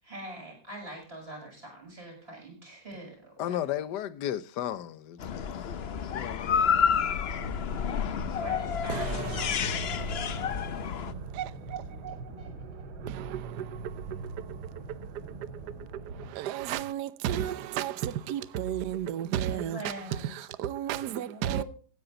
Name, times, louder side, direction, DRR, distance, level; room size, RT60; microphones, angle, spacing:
voice 1, 0.0-3.6 7.9-10.2 12.4-12.5 19.5-20.3 21.1-21.7, right 1 dB, 30° right, 8.4 m, -44 dB
voice 2, 3.4-5.7 6.1-6.7, left 11 dB, 65° left, 1.4 m, -34 dB
sound 1, 5.2-11.1, left 7 dB, 80° left, 0.5 m, -29 dB
sound 2, 7.2-16.3, right 2 dB, 85° right, 4.4 m, -44 dB
voice 3, 8.9-12.7 13.0-21.6, right 10 dB, 65° right, 1.2 m, -35 dB
16.0 x 10.5 x 4.0 m
omnidirectional pair, 2.2 m